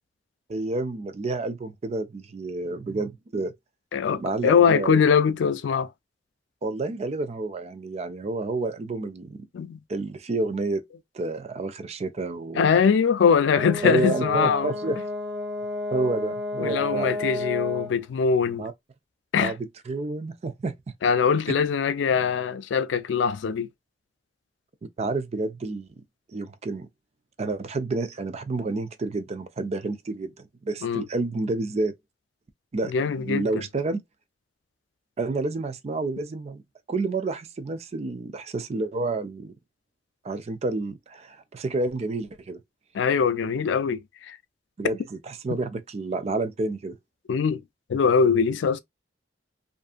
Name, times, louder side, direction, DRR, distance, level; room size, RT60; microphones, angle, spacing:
voice 1, 0.5-3.5 4.1-5.0 6.6-9.4 9.9-10.8 11.1-12.7 13.8-15.0 15.9-17.1 18.6-18.7 19.4-20.7 25.0-25.9 26.3-26.9 27.4-31.9 32.7-32.9 33.2-34.0 35.2-36.6 36.9-39.5 40.2-42.6 44.8-47.0, right 3 dB, 35° right, 0.4 m, -29 dB
voice 2, 3.9-5.9 9.5-9.8 12.6-14.7 16.6-18.6 19.3-19.5 21.0-23.7 30.8-31.0 32.9-33.5 42.9-44.0 44.3-44.4 47.3-47.6 47.9-48.8, left 6 dB, 85° left, 0.4 m, -22 dB
Brass instrument, 13.5-18.0, left 2 dB, 70° right, 1.0 m, -31 dB
2.6 x 2.4 x 2.4 m
head